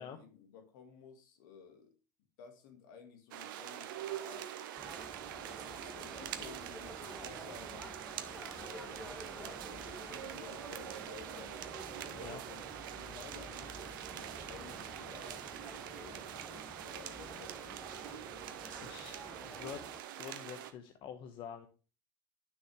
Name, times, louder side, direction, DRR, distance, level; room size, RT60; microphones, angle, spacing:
voice 1, 0.0-1.9 2.4-4.5 5.5-7.9 8.5-11.6 12.5-17.9, left 6 dB, 70° left, 2.1 m, -55 dB
sound 1, 3.3-20.7, right 11 dB, 75° right, 1.0 m, -45 dB
sound 2, 4.8-20.0, left 1 dB, 5° left, 1.3 m, -51 dB
voice 2, 12.0-12.4 18.8-19.8 20.2-21.7, left 8 dB, 50° left, 1.0 m, -47 dB
9.8 x 6.2 x 3.5 m
hypercardioid pair, 90°, 11 cm